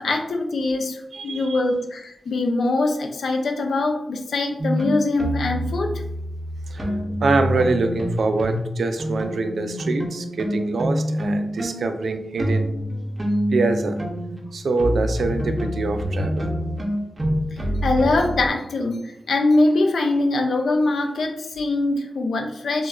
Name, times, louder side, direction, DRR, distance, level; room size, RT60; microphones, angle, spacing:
voice 1, 0.0-5.9 17.8-22.9, left 2 dB, 85° left, 3 dB, 0.4 m, -22 dB
voice 2, 1.1-1.6 6.7-6.9 7.2-12.7 13.5-14.0 14.5-16.5, right 3 dB, 75° right, 7 dB, 0.3 m, -24 dB
sound 1, 4.6-8.7 9.0-18.5, equal, 20° right, 0.5 m, -26 dB
4.7 x 2.2 x 2.3 m, 0.85 s
wide cardioid pair, 135°, 0 cm